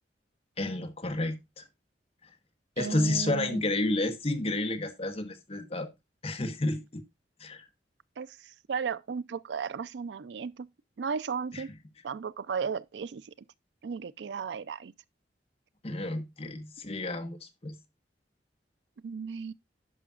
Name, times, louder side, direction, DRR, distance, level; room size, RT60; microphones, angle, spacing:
voice 1, 0.6-1.6 2.8-5.9 6.2-7.0 7.4-7.7 11.5-11.6 15.8-17.8, left 2 dB, 35° left, 1.1 m, -31 dB
voice 2, 2.8-3.6 8.2-10.7 11.0-11.7 12.0-13.3 13.8-14.9 19.0-19.5, right 6 dB, 75° right, 0.4 m, -35 dB
11.0 x 5.7 x 2.4 m
head